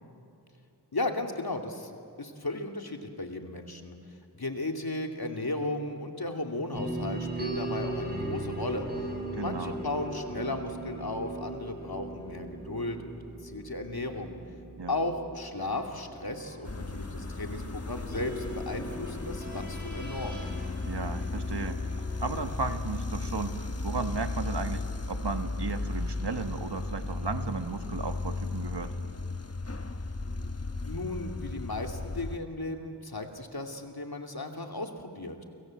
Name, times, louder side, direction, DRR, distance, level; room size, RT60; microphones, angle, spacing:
voice 1, 0.9-1.9 2.2-4.0 4.4-8.9 9.3-13.2 13.4-14.4 14.9-20.4 30.8-35.4, left 2 dB, 65° left, 3 dB, 2.8 m, -35 dB
sound 1, 6.7-22.7, right 1 dB, 25° right, 7.2 m, -39 dB
voice 2, 9.3-9.8 14.8-14.9 20.8-21.8 22.2-28.9, right 4 dB, 90° right, 7 dB, 1.6 m, -35 dB
sound 2, 16.6-32.4, left 3 dB, 40° left, 1.2 m, -35 dB
29.5 x 25.5 x 7.8 m, 2.7 s
wide cardioid pair, 50°, 40 cm